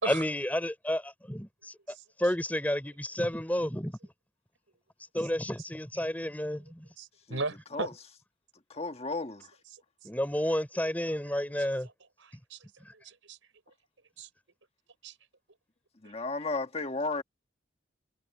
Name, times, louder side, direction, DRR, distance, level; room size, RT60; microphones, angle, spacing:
voice 1, 0.1-1.7 2.2-3.9 5.1-6.9 10.0-11.9, left 1 dB, 10° left, 3.4 m, -31 dB
voice 2, 7.0-7.9 11.6-11.7 12.2-12.6 12.9-13.4 14.2-14.3 15.0-15.1, right 3 dB, 85° right, 5.2 m, -37 dB
voice 3, 8.7-9.5 16.0-17.2, left 3 dB, 30° left, 1.5 m, -34 dB
head